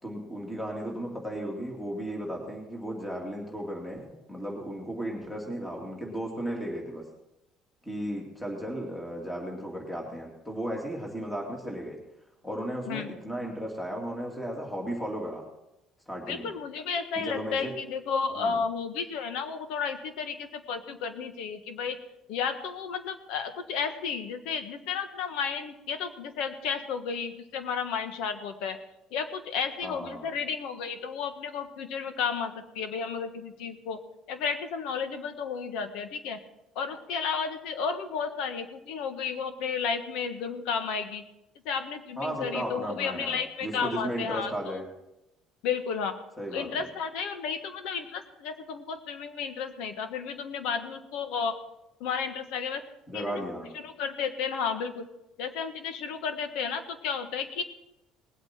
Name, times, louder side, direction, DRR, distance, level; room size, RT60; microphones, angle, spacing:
voice 1, 0.0-7.1 7.8-12.0 12.4-15.4 16.1-16.5 17.2-17.7 18.4-18.6 29.8-30.3 42.2-44.8 46.4-46.9 53.1-53.7, equal, 5° left, -1 dB, 2.6 m, -35 dB
voice 2, 16.3-22.0 22.3-28.8 29.1-34.0 34.3-36.4 36.7-41.2 41.6-44.8 45.6-46.2 46.5-51.5 52.0-52.8 53.1-53.5 53.7-55.1 55.4-57.6, left 6 dB, 80° left, 8 dB, 1.4 m, -32 dB
20.0 x 8.3 x 4.4 m, 0.89 s
cardioid pair, 135°, 0 cm